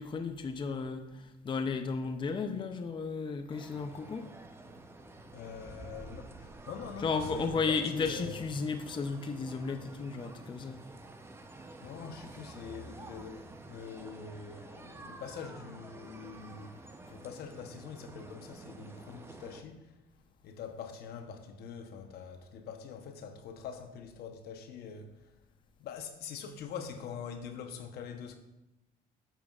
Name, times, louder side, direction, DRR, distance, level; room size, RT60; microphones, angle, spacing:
voice 1, 0.0-4.3 7.0-10.8 17.1-17.2, left 4 dB, 30° left, 0.5 m, -34 dB
sound 1, 3.5-19.6, right 2 dB, 15° right, 0.7 m, -49 dB
voice 2, 5.3-8.4 11.8-16.8 17.1-20.0 20.4-25.3 25.8-28.4, left 6 dB, 70° left, 0.9 m, -44 dB
11.0 x 7.2 x 2.4 m
cardioid pair, 110°, 17 cm